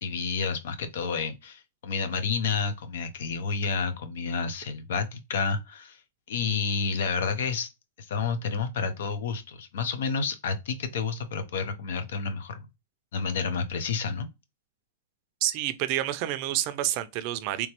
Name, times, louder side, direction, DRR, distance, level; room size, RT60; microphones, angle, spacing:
voice 1, 0.0-6.0 6.3-7.7 8.1-12.7 13.1-14.3, left 5 dB, 70° left, 0.7 m, -30 dB
voice 2, 15.4-17.7, right 13 dB, 45° right, 0.4 m, -28 dB
3.4 x 3.0 x 2.9 m
hypercardioid pair, 145°, 0 cm